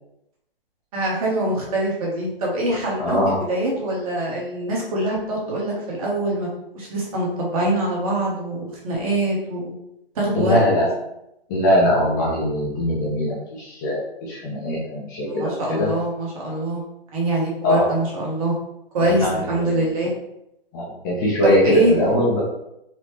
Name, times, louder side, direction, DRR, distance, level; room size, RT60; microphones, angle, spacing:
voice 1, 0.9-6.5 6.7-9.7 10.1-10.6 15.3-16.8 17.1-18.6 18.9-20.1 21.4-22.0, right 1 dB, 35° right, -3 dB, 1.2 m, -24 dB
voice 2, 3.0-3.4 10.4-10.9 11.5-15.9 17.6-17.9 19.0-19.8 20.7-22.4, left 1 dB, 20° left, -6 dB, 0.6 m, -21 dB
4.2 x 2.2 x 3.0 m, 0.82 s
hypercardioid pair, 145°, 30 cm